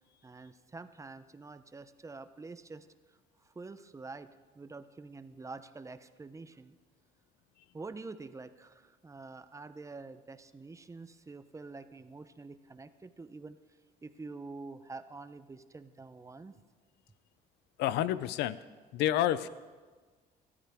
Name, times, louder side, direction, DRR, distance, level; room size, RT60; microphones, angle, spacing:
voice 1, 0.2-2.9 3.4-6.8 7.7-13.6 14.0-16.6, right 3 dB, 20° right, 11 dB, 0.8 m, -47 dB
voice 2, 17.8-18.6 18.9-19.5, left 12 dB, 85° left, 16 dB, 0.6 m, -29 dB
25.0 x 13.5 x 3.6 m, 1.4 s
cardioid pair, 110°, 17 cm